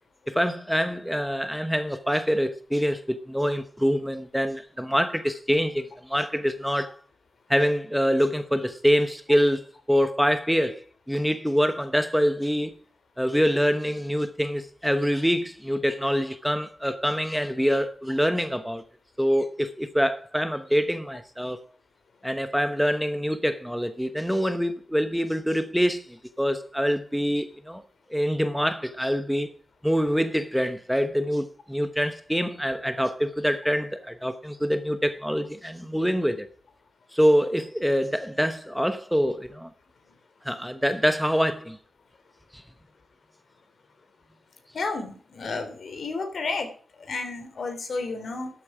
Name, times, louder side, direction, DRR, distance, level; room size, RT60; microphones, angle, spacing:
voice 1, 0.3-6.9 7.5-12.7 13.2-18.8 19.2-21.6 22.2-27.8 28.1-29.5 29.8-36.5 37.1-39.7 40.4-41.8 42.5-42.6, equal, ahead, 1.0 m, -25 dB
voice 2, 44.7-46.7 47.0-48.5, left 3 dB, 60° left, 3.1 m, -31 dB
13.0 x 8.6 x 4.9 m
wide cardioid pair, 105°, 0 cm